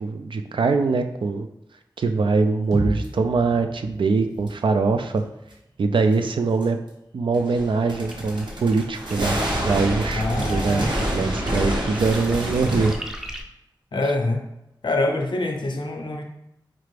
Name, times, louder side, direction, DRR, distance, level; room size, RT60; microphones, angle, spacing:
voice 1, 0.0-1.5 2.0-5.2 5.8-6.8 7.1-12.9, right 4 dB, 85° right, 7 dB, 0.4 m, -23 dB
sound 1, 2.7-6.7, right 1 dB, 45° right, 1.0 m, -34 dB
sound 2, 3.0-3.1 4.5-4.6 6.6-6.7 7.3-12.9, equal, 65° right, 0.9 m, -27 dB
sound 3, 7.8-13.4, equal, 5° right, 0.4 m, -40 dB
voice 2, 10.1-11.0 13.9-14.4 14.8-16.2, left 2 dB, 70° left, 2 dB, 0.6 m, -25 dB
4.4 x 2.5 x 3.2 m, 0.85 s
wide cardioid pair, 80°, 8 cm